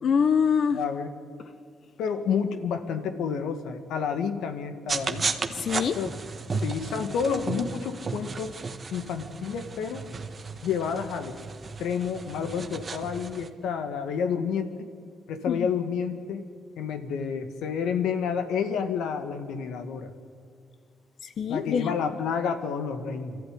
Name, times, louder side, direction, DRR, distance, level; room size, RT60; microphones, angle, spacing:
voice 1, 0.0-0.8 5.5-6.0 6.5-6.6 15.5-15.7 21.2-21.9, left 7 dB, 55° left, 11 dB, 1.0 m, -25 dB
voice 2, 0.7-1.1 2.0-5.3 6.0-6.1 6.6-8.5 8.9-10.0 10.6-11.4 11.8-14.7 15.3-16.4 16.8-20.1 21.5-23.4, left 6 dB, 85° left, 7 dB, 2.0 m, -29 dB
sound 1, 4.9-13.5, right 4 dB, 35° right, 1.5 m, -34 dB
25.0 x 14.0 x 9.8 m, 2.2 s
cardioid pair, 90°, 0 cm